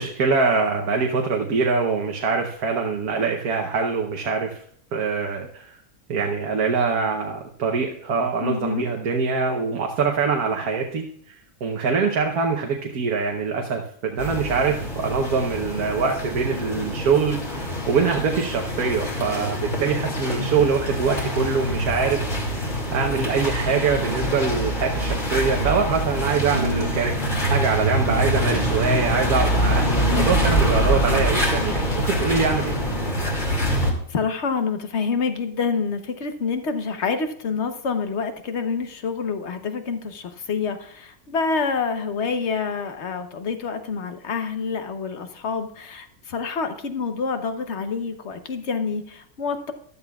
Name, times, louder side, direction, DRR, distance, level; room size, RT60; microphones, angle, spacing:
voice 1, 0.0-4.6 4.9-5.8 6.1-11.3 11.6-22.2 22.9-27.1 27.5-32.8, right 5 dB, 85° right, 2 dB, 1.5 m, -24 dB
voice 2, 8.4-8.9 20.4-20.5 30.1-30.5 34.1-49.7, left 5 dB, 55° left, 8 dB, 1.1 m, -27 dB
sound 1, 14.2-33.9, equal, 30° left, 2.4 m, -25 dB
14.0 x 12.0 x 2.4 m, 0.62 s
omnidirectional pair, 1.6 m